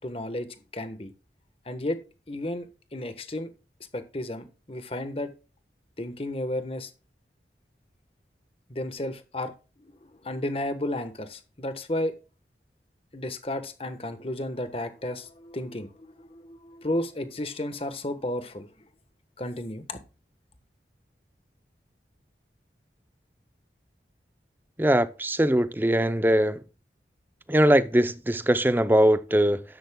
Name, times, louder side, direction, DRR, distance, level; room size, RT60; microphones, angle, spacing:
voice 1, 0.0-0.5 0.7-1.1 1.6-2.0 2.3-3.5 3.9-5.3 6.0-6.9 8.7-9.5 9.8-12.1 13.1-18.7 19.4-20.0, left 1 dB, 30° left, 1.2 m, -33 dB
voice 2, 24.8-26.6 27.5-29.6, right 1 dB, 10° right, 0.5 m, -21 dB
12.5 x 10.5 x 2.3 m
head